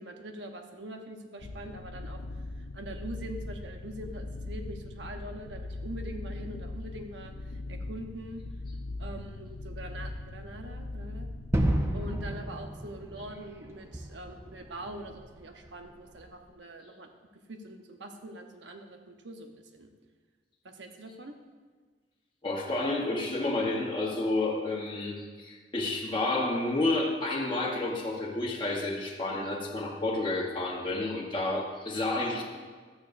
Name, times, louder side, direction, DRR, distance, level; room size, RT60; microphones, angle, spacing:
voice 1, 0.0-2.2 2.6-8.4 9.0-11.3 11.9-17.1 17.5-19.9 20.6-21.3, right 1 dB, 75° right, 4 dB, 1.0 m, -43 dB
sound 1, 1.4-12.4, left 2 dB, 70° left, 0.5 m, -40 dB
Gunshot gunfire / Fireworks / Boom, 11.5-16.3, right 1 dB, 15° right, 0.7 m, -33 dB
voice 2, 22.4-32.4, left 2 dB, 25° left, -3 dB, 1.2 m, -30 dB
13.5 x 8.8 x 2.6 m, 1.5 s
head